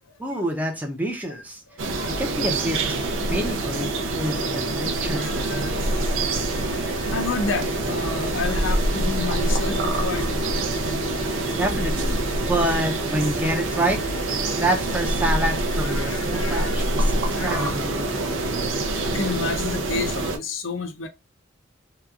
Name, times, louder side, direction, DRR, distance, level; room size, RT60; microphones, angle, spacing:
voice 1, 0.2-1.6 2.2-3.0 3.3-3.9 4.2-5.3 11.6-12.2 12.5-14.0 14.6-18.6, right 1 dB, 10° right, 0.5 m, -27 dB
voice 2, 1.8-2.2 5.1-5.7 7.1-10.6 15.8-16.8 17.3-17.7 19.0-21.1, left 4 dB, 80° left, 0.5 m, -30 dB
sound 1, 1.8-20.4, right 2 dB, 75° right, 0.5 m, -25 dB
sound 2, 2.8-19.5, left 1 dB, 35° left, 0.6 m, -38 dB
sound 3, 7.9-15.2, equal, 35° right, 1.1 m, -42 dB
2.9 x 2.3 x 2.3 m
head